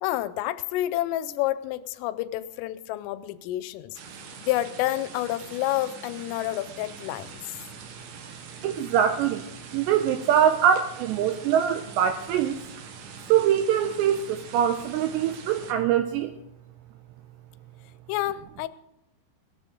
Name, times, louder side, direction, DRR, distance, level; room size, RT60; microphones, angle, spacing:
voice 1, 0.0-4.0 4.4-7.6 18.1-18.7, left 15 dB, 90° left, 14 dB, 3.3 m, -29 dB
sound 1, 3.9-15.7, right 5 dB, 65° right, 2.6 m, -44 dB
voice 2, 8.6-9.4 9.7-12.6 13.3-16.3, right 9 dB, 85° right, 7 dB, 2.5 m, -23 dB
19.0 x 12.0 x 3.8 m, 0.84 s
omnidirectional pair, 5.7 m